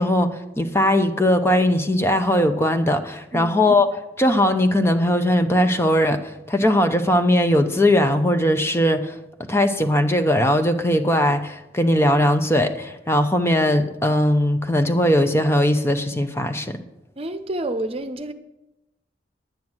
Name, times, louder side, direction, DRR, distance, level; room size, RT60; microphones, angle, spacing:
voice 1, 0.0-3.9 4.2-9.2 9.5-16.7, left 1 dB, 15° left, 0.7 m, -19 dB
voice 2, 17.2-18.3, right 1 dB, 35° right, 0.8 m, -28 dB
10.5 x 9.2 x 6.2 m
head